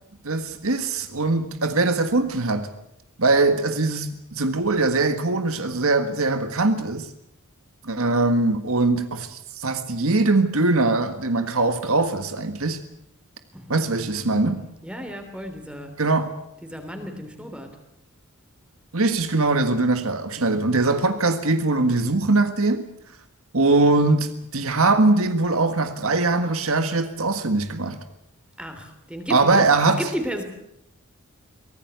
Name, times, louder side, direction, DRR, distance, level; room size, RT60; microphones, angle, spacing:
voice 1, 0.2-2.7 3.2-7.1 7.8-12.8 13.7-14.6 16.0-16.4 18.9-22.9 23.5-28.0 29.3-30.0, right 3 dB, 70° right, 1.7 m, -21 dB
voice 2, 13.5-13.9 14.8-15.9 16.6-17.7 28.6-30.4, equal, 5° right, 3.2 m, -33 dB
24.0 x 18.0 x 8.2 m
head